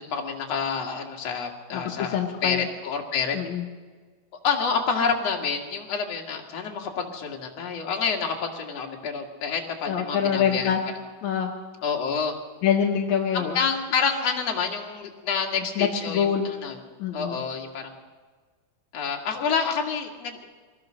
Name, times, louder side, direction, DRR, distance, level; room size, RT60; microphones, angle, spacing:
voice 1, 0.1-3.4 4.4-10.7 11.8-12.3 13.3-16.8 17.1-17.9 18.9-20.4, left 5 dB, 45° left, 1 dB, 2.6 m, -28 dB
voice 2, 1.7-2.7 3.3-3.6 9.9-10.8 11.2-11.5 12.6-13.6 15.8-16.5 17.0-17.4, left 8 dB, 65° left, 1 dB, 2.0 m, -25 dB
23.5 x 19.0 x 6.5 m, 1.4 s
omnidirectional pair, 4.8 m